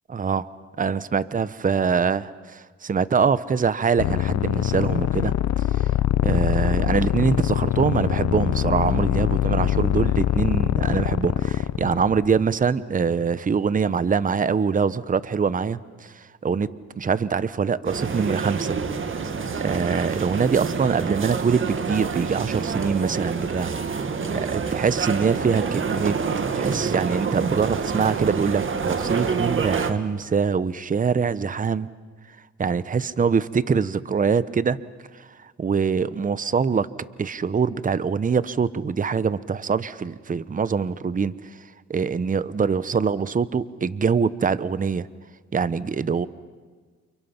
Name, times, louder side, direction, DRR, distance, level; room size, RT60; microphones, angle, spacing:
voice 1, 0.1-0.5 0.8-2.2 2.8-5.3 5.7-5.9 6.2-18.8 19.6-23.7 24.3-26.2 26.5-31.9 32.6-34.8 35.1-36.9 37.2-41.6 41.9-45.1 45.5-46.3, right 6 dB, 25° right, 16 dB, 0.9 m, -24 dB
sound 1, 4.0-12.4, left 12 dB, 65° left, 0.9 m, -23 dB
sound 2, 17.8-29.9, right 5 dB, 40° right, 2.1 m, -27 dB
29.0 x 29.0 x 5.9 m, 1.5 s
cardioid pair, 90°, 30 cm